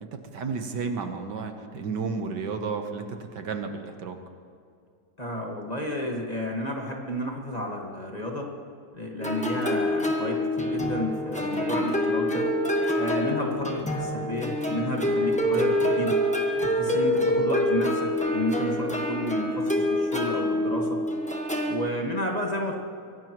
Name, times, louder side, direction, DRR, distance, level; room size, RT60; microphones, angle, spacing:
voice 1, 0.0-4.2, right 5 dB, 70° right, 5 dB, 1.7 m, -32 dB
voice 2, 5.2-8.5 8.9-12.5 13.0-16.1 16.6-21.0 21.7-22.7, equal, 20° left, 0 dB, 1.7 m, -31 dB
sound 1, 9.2-21.8, left 1 dB, 5° left, 1.2 m, -26 dB
24.0 x 17.5 x 3.1 m, 2.4 s
omnidirectional pair, 2.0 m